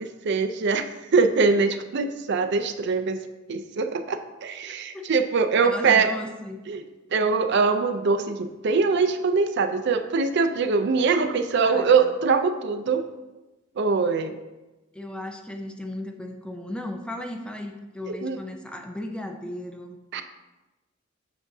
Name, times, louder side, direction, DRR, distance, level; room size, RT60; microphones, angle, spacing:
voice 1, 0.0-3.2 3.5-6.1 6.7-6.8 7.1-13.0 13.8-14.4 18.2-18.4 20.1-20.2, right 4 dB, 60° right, 8 dB, 0.5 m, -23 dB
voice 2, 4.7-5.1 5.6-6.6 11.6-12.1 14.9-20.0, left 1 dB, 5° left, 4 dB, 0.4 m, -36 dB
7.6 x 2.6 x 5.9 m, 1.1 s
head